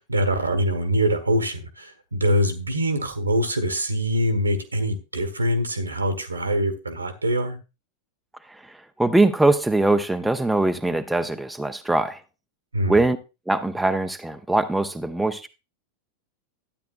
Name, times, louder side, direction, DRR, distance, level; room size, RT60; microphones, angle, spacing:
voice 1, 0.1-7.6 12.7-13.0, equal, 80° right, 1.4 m, -24 dB
voice 2, 8.5-12.2 12.9-13.2 13.5-15.5, right 2 dB, 5° right, 0.7 m, -22 dB
12.0 x 9.3 x 2.5 m
figure-of-eight pair, 90°, 0 cm